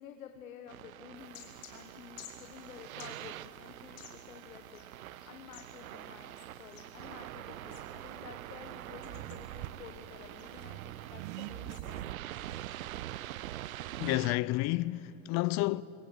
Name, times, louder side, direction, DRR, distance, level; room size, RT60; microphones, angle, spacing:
voice 1, 0.0-6.3 6.6-12.1, left 8 dB, 85° left, 1.5 m, -51 dB
sound 1, 0.7-14.4, right 14 dB, 90° right, 0.6 m, -45 dB
sound 2, 1.2-12.1, left 9 dB, 65° left, 3.4 m, -57 dB
Accelerating revving vroom, 7.0-14.3, right 15 dB, 55° right, 0.7 m, -48 dB
voice 2, 14.0-15.8, left 19 dB, 45° left, 0.6 m, -30 dB
22.0 x 18.0 x 7.9 m
hypercardioid pair, 105°, 41 cm